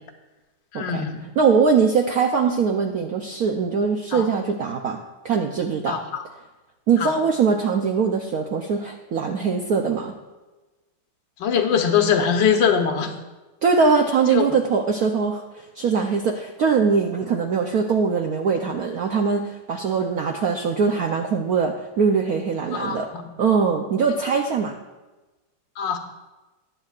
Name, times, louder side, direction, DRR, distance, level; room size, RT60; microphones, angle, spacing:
voice 1, 0.7-1.3 4.1-4.3 5.9-6.2 7.0-7.1 11.4-13.1 14.3-14.4 22.7-23.2 25.8-26.0, left 7 dB, 60° left, 5 dB, 1.6 m, -22 dB
voice 2, 1.4-5.0 5.2-6.0 6.9-10.1 13.6-15.4 15.8-23.1 23.4-24.7, right 5 dB, 75° right, 3 dB, 0.8 m, -22 dB
19.5 x 9.1 x 2.4 m, 1.1 s
omnidirectional pair, 2.4 m